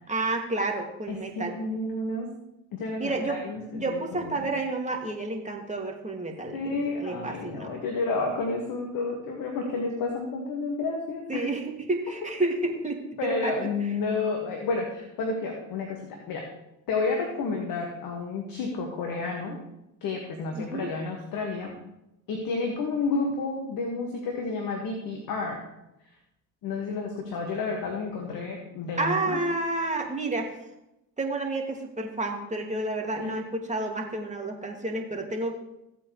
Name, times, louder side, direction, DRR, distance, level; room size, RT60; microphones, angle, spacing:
voice 1, 0.1-1.5 3.0-3.4 3.7-7.7 11.3-13.7 20.5-20.9 29.0-30.5 31.2-35.5, right 2 dB, 20° right, 2 dB, 2.5 m, -30 dB
voice 2, 1.1-2.3 2.7-4.4 6.5-11.4 12.7-12.8 13.2-16.5 16.9-19.6 20.0-21.7 22.3-25.6 26.6-29.4 33.2-33.4, left 3 dB, 60° left, 1 dB, 2.0 m, -31 dB
15.5 x 8.4 x 3.3 m, 0.88 s
hypercardioid pair, 55°, 38 cm